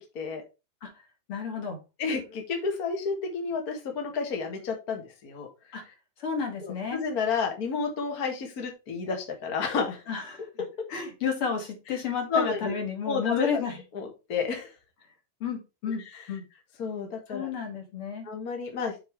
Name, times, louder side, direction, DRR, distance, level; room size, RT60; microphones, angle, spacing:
voice 1, 1.3-1.8 5.7-5.8 6.2-7.0 10.1-10.6 10.9-13.8 15.4-16.0 16.3-16.4 17.3-18.3, left 6 dB, 45° left, 2 dB, 2.3 m, -31 dB
voice 2, 2.0-5.5 6.6-10.0 12.3-12.7 13.1-13.6 13.9-14.7 16.1-16.2 16.8-17.5 18.2-18.9, left 5 dB, 85° left, 3 dB, 0.8 m, -31 dB
7.1 x 4.7 x 4.6 m, 0.27 s
omnidirectional pair, 4.4 m